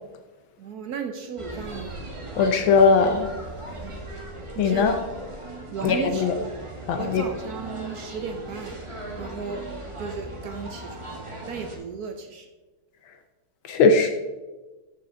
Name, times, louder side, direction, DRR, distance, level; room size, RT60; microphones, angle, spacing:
voice 1, 0.6-2.0 3.8-3.9 4.5-5.0 5.7-6.6 7.0-8.8 9.2-9.7 10.0-11.2 11.5-12.5, right 6 dB, 70° right, 6 dB, 0.9 m, -35 dB
sound 1, 1.4-11.8, right 1 dB, 20° right, 1.1 m, -38 dB
voice 2, 2.4-3.3 4.6-5.0 5.8-6.3 6.9-7.2 13.7-14.1, left 4 dB, 75° left, 6 dB, 1.4 m, -19 dB
13.5 x 5.7 x 3.7 m, 1.2 s
omnidirectional pair, 2.3 m